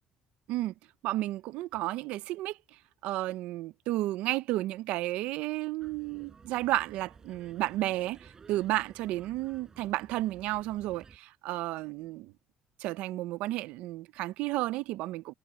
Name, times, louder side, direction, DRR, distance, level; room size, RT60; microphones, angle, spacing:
voice 1, 1.0-2.6 3.0-12.3 12.8-15.3, right 17 dB, 80° right, 0.6 m, -32 dB
sound 1, 5.8-11.2, right 5 dB, 30° right, 6.5 m, -55 dB
cardioid pair, 130°, 2 cm